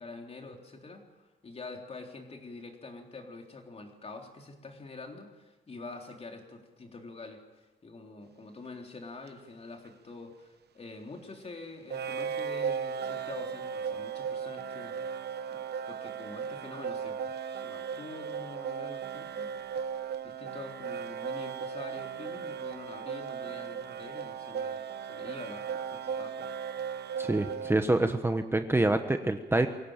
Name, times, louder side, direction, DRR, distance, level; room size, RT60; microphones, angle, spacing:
voice 1, 0.0-15.2 15.5-19.8 20.2-26.5, left 3 dB, 35° left, 3 dB, 3.7 m, -46 dB
sound 1, 9.3-9.4 11.9-27.7, right 7 dB, 65° right, 1.0 m, -36 dB
voice 2, 27.2-29.7, right 2 dB, 15° right, 7 dB, 1.2 m, -26 dB
24.0 x 17.0 x 9.1 m, 1.1 s
cardioid pair, 115°, 18 cm